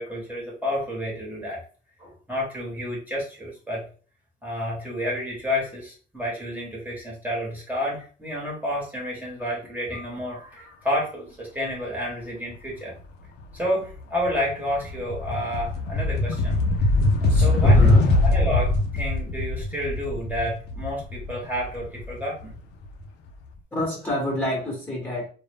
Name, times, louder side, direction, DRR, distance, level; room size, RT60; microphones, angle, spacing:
voice 1, 0.0-1.6 2.0-3.8 4.4-12.9 13.5-16.6 17.2-17.8 18.2-22.6, left 1 dB, 10° right, -4 dB, 1.0 m, -30 dB
Sound of bass rattling from a car trunk, 13.4-13.6 14.0-22.8, left 2 dB, 80° left, 0.4 m, -22 dB
voice 2, 17.3-18.1 23.7-25.3, equal, 10° left, -2 dB, 0.9 m, -26 dB
2.0 x 2.0 x 3.4 m, 0.39 s
cardioid pair, 110°, 17 cm